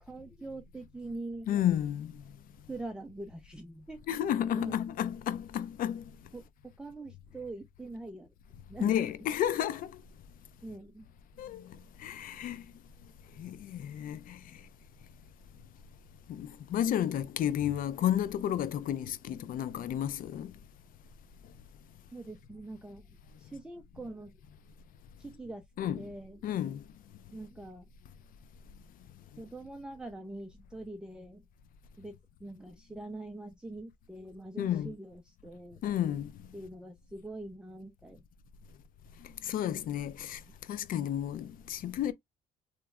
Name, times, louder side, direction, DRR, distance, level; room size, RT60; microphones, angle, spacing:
voice 1, 0.0-1.5 2.7-4.0 4.5-4.8 6.3-6.4 6.8-8.3 8.7-9.0 10.6-11.1 22.1-24.3 25.2-26.4 27.3-27.9 29.4-31.4 32.0-32.2 32.4-35.8 36.5-38.2, right 2 dB, 5° right, 0.4 m, -43 dB
voice 2, 1.5-2.2 4.1-6.0 8.8-10.0 11.4-12.7 13.4-14.6 16.3-20.5 25.8-26.1 26.4-26.8 34.6-34.9 35.8-36.5 39.2-40.4 40.7-42.1, left 10 dB, 55° left, 0.4 m, -32 dB
3.1 x 2.1 x 3.5 m
cardioid pair, 110°, 17 cm